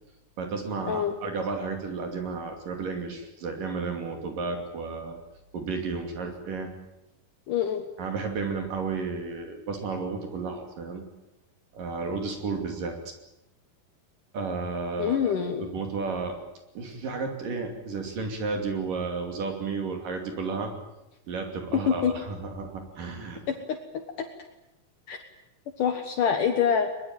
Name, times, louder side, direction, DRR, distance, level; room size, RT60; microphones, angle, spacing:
voice 1, 0.4-5.2 5.5-6.7 8.0-11.0 11.7-13.1 14.3-15.3 15.6-16.4 16.8-20.7 21.3-23.4, right 4 dB, 60° right, 4 dB, 4.2 m, -32 dB
voice 2, 7.5-7.8 15.0-15.7 21.7-22.1 23.5-23.8 25.1-25.2 25.8-26.9, left 8 dB, 60° left, 5 dB, 2.7 m, -25 dB
22.5 x 22.0 x 9.0 m, 0.90 s
omnidirectional pair, 4.5 m